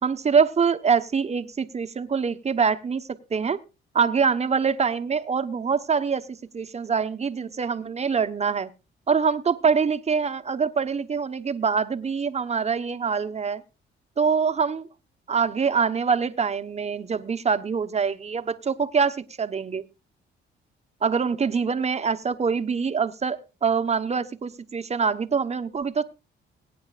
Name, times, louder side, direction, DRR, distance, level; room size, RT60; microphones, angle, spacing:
voice 1, 0.0-3.6 3.9-6.3 6.5-8.7 9.1-13.6 14.2-14.9 15.3-19.8 21.0-26.0, right 6 dB, 35° right, 1.1 m, -24 dB
22.0 x 9.5 x 2.5 m
cardioid pair, 90°, 20 cm